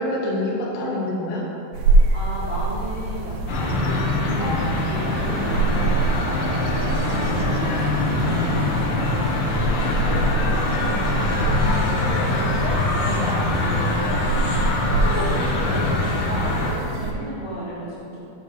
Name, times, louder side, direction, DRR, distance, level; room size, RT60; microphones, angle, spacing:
voice 1, 0.0-1.5 9.6-11.1, left 1 dB, 80° left, -4 dB, 3.4 m, -28 dB
sound 1, 1.7-17.1, right 3 dB, 85° right, 2.8 m, -25 dB
voice 2, 2.1-5.4 5.8-8.7 11.5-11.7 12.0-14.3 14.9-18.2, right 1 dB, 35° right, -12 dB, 0.9 m, -34 dB
sound 2, 3.5-16.7, left 2 dB, 65° left, 2.4 m, -23 dB
sound 3, 4.4-10.3, right 1 dB, 60° right, 1.5 m, -38 dB
9.5 x 3.5 x 6.5 m, 2.6 s
omnidirectional pair, 4.8 m